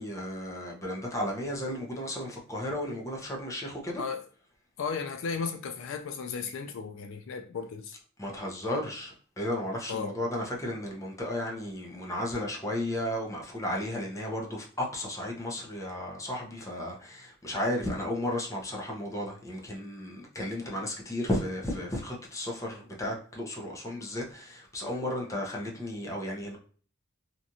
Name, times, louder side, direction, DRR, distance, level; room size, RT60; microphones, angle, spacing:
voice 1, 0.0-4.0 8.2-26.6, left 1 dB, 15° left, 0.7 m, -34 dB
voice 2, 4.8-8.0 9.9-10.1, left 5 dB, 65° left, 0.3 m, -35 dB
2.9 x 2.4 x 2.6 m
head